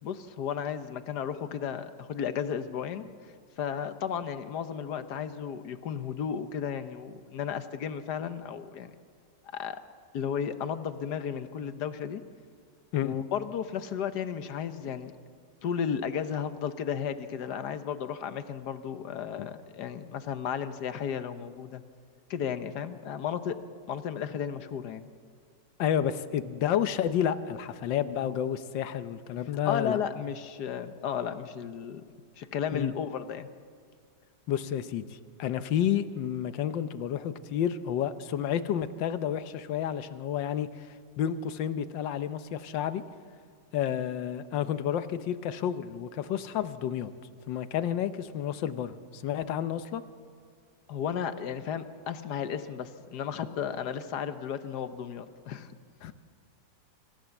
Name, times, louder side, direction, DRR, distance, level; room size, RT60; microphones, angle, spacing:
voice 1, 0.0-3.1 3.6-8.9 9.5-9.8 10.1-12.2 13.0-15.1 15.6-21.8 22.3-23.6 23.9-25.1 29.6-32.0 32.4-33.5 50.9-55.7, left 8 dB, 70° left, 11 dB, 1.5 m, -34 dB
voice 2, 25.8-30.0 32.7-32.9 34.5-40.8 41.2-43.0 43.7-47.1 47.5-50.0 56.0-56.1, left 9 dB, 90° left, 12 dB, 1.5 m, -30 dB
26.0 x 14.5 x 7.2 m, 2.1 s
omnidirectional pair, 1.9 m